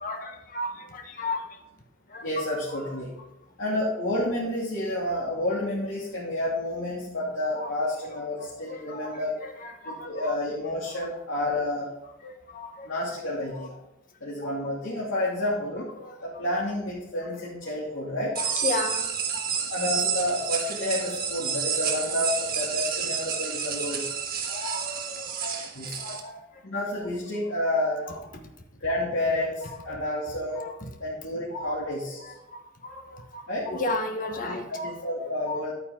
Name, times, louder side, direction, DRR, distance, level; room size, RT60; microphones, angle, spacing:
voice 1, 0.0-1.6 2.1-2.3 2.7-2.8 7.5-7.7 8.7-10.3 12.2-12.9 16.0-16.2 18.4-19.3 24.5-26.4 29.9-30.0 30.6-30.9 31.5-31.8 32.2-34.9 35.5-35.6, left 2 dB, 40° left, 4 dB, 1.2 m, -35 dB
voice 2, 2.2-3.1 3.6-9.4 9.8-11.9 12.8-13.8 14.2-15.9 16.2-18.4 19.7-24.1 25.7-26.0 26.6-28.1 28.8-30.7 31.0-32.3 33.5-33.7 34.5-35.7, left 1 dB, 70° left, -7 dB, 2.7 m, -30 dB
sound 1, 18.4-26.2, right 7 dB, 45° right, 1.4 m, -30 dB
11.5 x 9.4 x 3.8 m, 0.92 s
head